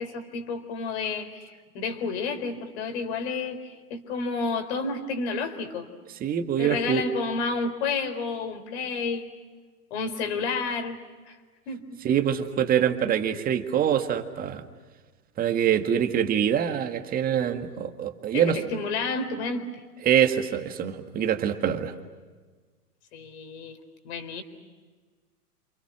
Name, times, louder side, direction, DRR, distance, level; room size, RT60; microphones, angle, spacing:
voice 1, 0.0-5.9 6.6-9.3 9.9-11.0 11.3-11.4 11.7-12.0 18.3-19.7 23.1-23.8 24.0-24.4, left 4 dB, 45° left, 9 dB, 4.2 m, -30 dB
voice 2, 6.2-7.0 12.0-14.6 15.4-18.6 20.0-21.9, right 9 dB, 20° right, 7 dB, 1.9 m, -24 dB
29.0 x 28.5 x 6.1 m, 1.4 s
figure-of-eight pair, 115°, 47 cm